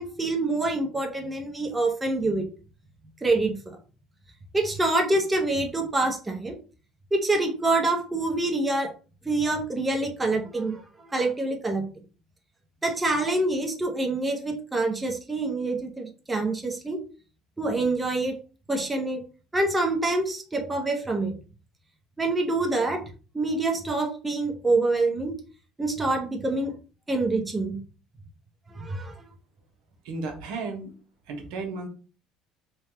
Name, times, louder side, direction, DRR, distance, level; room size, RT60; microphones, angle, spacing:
voice 1, 0.0-2.5 3.2-3.8 4.5-6.6 7.1-8.9 9.2-11.9 12.8-17.0 17.6-18.4 18.7-19.2 19.5-21.4 22.2-23.0 23.3-25.4 25.8-26.7 27.1-27.8 28.7-29.1, right 2 dB, 15° right, 2 dB, 0.7 m, -26 dB
voice 2, 30.0-30.9 31.3-31.9, right 3 dB, 85° right, 3 dB, 1.1 m, -34 dB
3.4 x 2.3 x 4.3 m, 0.36 s
cardioid pair, 115°, 0 cm